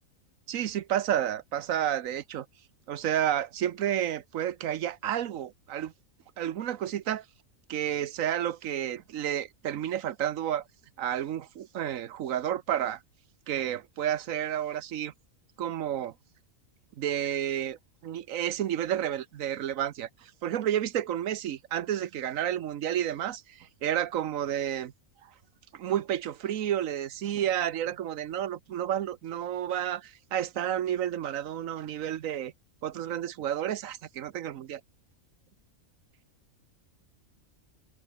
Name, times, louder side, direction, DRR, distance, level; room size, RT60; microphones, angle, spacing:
voice 1, 0.5-2.5 2.9-5.9 6.4-7.2 7.7-10.6 11.0-13.0 13.5-15.1 15.6-16.1 17.0-24.9 25.7-32.5 32.8-34.8, right 11 dB, 75° right, 1.2 m, -31 dB
omnidirectional pair, 1.4 m